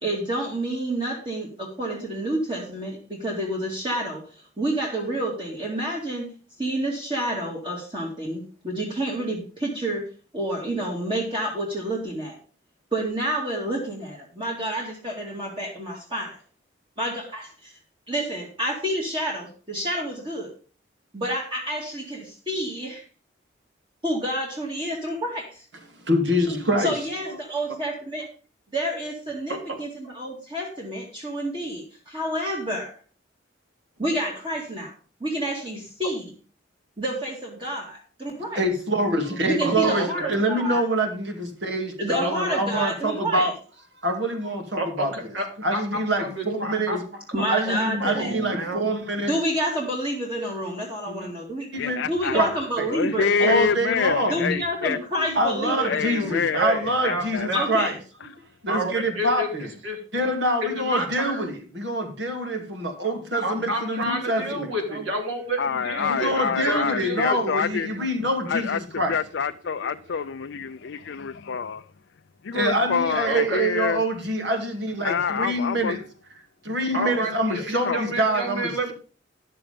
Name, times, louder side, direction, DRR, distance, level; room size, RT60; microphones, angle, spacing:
voice 1, 0.0-4.2 4.6-6.3 6.6-10.0 10.3-12.4 12.9-16.4 17.0-17.7 18.1-20.5 21.1-23.0 24.0-25.6 26.8-28.3 28.7-32.9 34.0-34.9 35.2-36.3 37.0-38.6 39.5-40.8 42.0-43.5 47.3-48.4 49.3-51.7 52.1-53.7 54.3-56.4 57.5-57.9, right 1 dB, 25° right, 2.2 m, -29 dB
voice 2, 26.1-26.9 27.3-27.4 38.6-43.5 44.0-45.1 45.6-47.0 47.4-49.4 51.1-51.3 51.7-52.0 52.3-52.5 52.8-52.9 53.4-57.9 58.6-59.7 60.1-64.7 64.9-65.0 66.0-69.2 72.5-76.0 76.6-78.9, right 1 dB, 65° right, 2.4 m, -25 dB
voice 3, 39.6-40.4 42.2-42.6 44.8-45.4 45.7-47.0 47.4-48.9 52.3-52.4 53.2-53.6 56.5-57.7 58.7-59.5 59.8-60.0 60.6-61.6 63.4-67.4 73.2-73.6 76.9-78.9, right 1 dB, 80° right, 3.2 m, -30 dB
voice 4, 51.8-52.4 52.9-55.0 55.8-56.6 57.0-57.5 65.6-67.9 68.5-71.8 72.4-74.0 75.0-76.0 77.8-78.0, left 6 dB, 70° left, 0.5 m, -26 dB
11.0 x 6.8 x 5.1 m
head